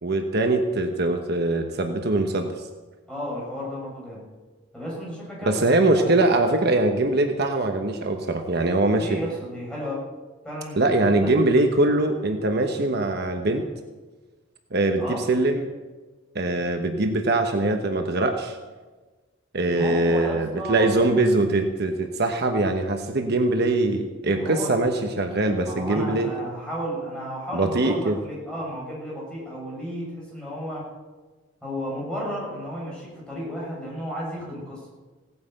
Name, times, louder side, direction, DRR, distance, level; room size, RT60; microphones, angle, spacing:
voice 1, 0.0-2.5 5.5-9.2 10.8-13.6 14.7-15.7 16.3-18.6 19.5-26.3 27.5-28.2, right 2 dB, 55° right, 5 dB, 1.1 m, -22 dB
voice 2, 3.1-4.2 4.7-6.1 9.0-10.1 10.4-11.3 15.0-15.2 19.7-20.9 24.3-24.8 25.6-30.9 31.6-34.9, equal, 5° left, -5 dB, 6.4 m, -33 dB
17.0 x 9.4 x 7.9 m, 1.3 s
head